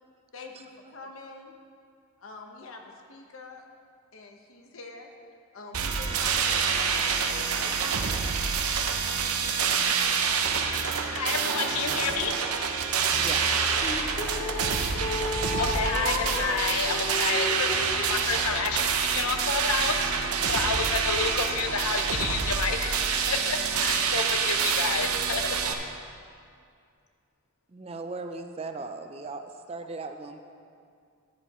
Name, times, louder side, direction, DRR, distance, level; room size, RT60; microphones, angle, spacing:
voice 1, 0.3-1.5 2.2-3.6 4.1-5.1 5.5-8.1 18.4-18.5, left 3 dB, 65° left, 2 dB, 1.1 m, -44 dB
sound 1, 5.7-25.7, right 6 dB, 85° right, 0.8 m, -27 dB
voice 2, 11.1-12.4 15.6-18.9 19.1-25.6, left 5 dB, 80° left, 6 dB, 0.7 m, -30 dB
voice 3, 13.2-13.6 27.7-30.4, right 3 dB, 25° right, 7 dB, 0.4 m, -38 dB
sound 2, 13.8-18.3, left 2 dB, 30° left, 0.5 m, -33 dB
13.5 x 10.0 x 3.0 m, 2.3 s
head